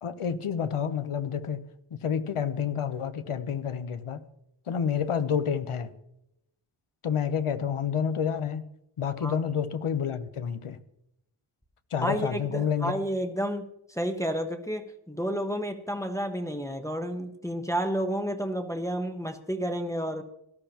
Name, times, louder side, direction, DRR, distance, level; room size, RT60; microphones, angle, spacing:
voice 1, 0.0-1.7 2.0-4.2 4.7-5.9 7.0-8.6 9.0-10.8 11.9-12.9, left 7 dB, 85° left, 0.9 m, -29 dB
voice 2, 12.0-20.2, equal, 5° left, 1.0 m, -31 dB
18.0 x 12.5 x 2.9 m
wide cardioid pair, 65°, 50 cm